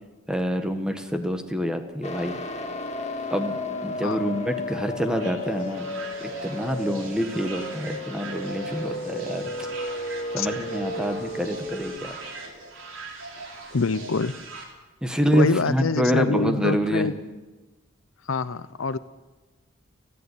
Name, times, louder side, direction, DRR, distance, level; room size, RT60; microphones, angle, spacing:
voice 1, 0.3-2.4 3.3-5.9 6.2-9.4 10.3-12.2 15.0-17.1, equal, 5° right, 6 dB, 1.4 m, -26 dB
sound 1, 1.8-9.6, equal, 20° right, 6.8 m, -50 dB
sound 2, 2.0-12.0, left 2 dB, 35° left, 1.7 m, -33 dB
sound 3, 5.1-14.6, right 3 dB, 70° right, 4.4 m, -40 dB
voice 2, 13.7-14.3 15.3-17.1 18.3-19.0, left 4 dB, 85° left, 14 dB, 0.7 m, -25 dB
29.5 x 11.0 x 8.4 m, 1.2 s
head